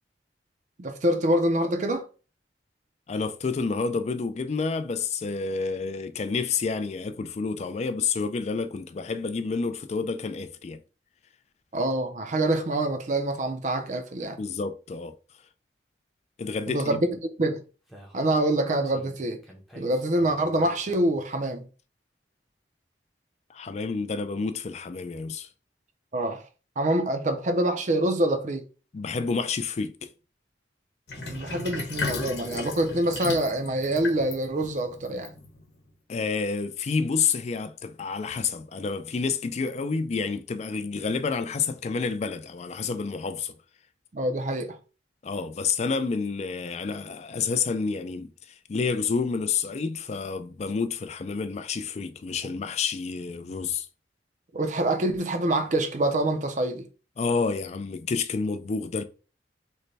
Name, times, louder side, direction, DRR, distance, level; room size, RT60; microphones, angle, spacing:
voice 1, 0.8-2.1 11.7-14.4 16.7-17.1 17.4-17.6 18.1-19.4 19.7-21.7 26.1-26.4 26.8-28.6 31.3-35.3 44.1-44.8 54.5-56.9, right 1 dB, 40° right, 0.5 m, -25 dB
voice 2, 3.1-10.8 14.4-15.1 16.4-17.0 23.5-25.5 28.9-30.1 36.1-43.5 45.2-53.9 57.2-59.0, left 5 dB, 35° left, 0.3 m, -29 dB
Speech, 17.9-21.3, right 1 dB, ahead, 0.6 m, -47 dB
Sink (filling or washing), 31.1-35.8, left 3 dB, 65° left, 0.9 m, -35 dB
3.2 x 2.2 x 3.9 m
head